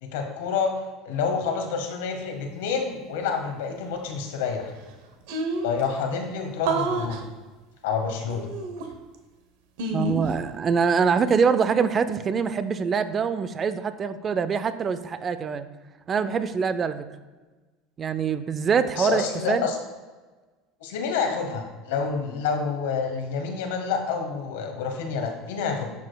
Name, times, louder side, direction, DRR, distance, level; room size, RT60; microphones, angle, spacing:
voice 1, 0.0-0.7 1.0-4.7 5.6-7.2 7.8-8.5 19.0-19.8 20.8-25.9, left 5 dB, 85° left, 4 dB, 1.1 m, -28 dB
sound 1, 4.6-4.7 4.9-5.0 5.3-5.8 6.6-7.2 8.3-9.2 9.8-10.4, right 2 dB, 80° right, 0.9 m, -28 dB
voice 2, 9.9-15.7 16.1-17.0 18.0-19.7, right 6 dB, 30° right, 12 dB, 0.4 m, -24 dB
10.5 x 4.8 x 2.3 m, 1.3 s
supercardioid pair, 105°, 0 cm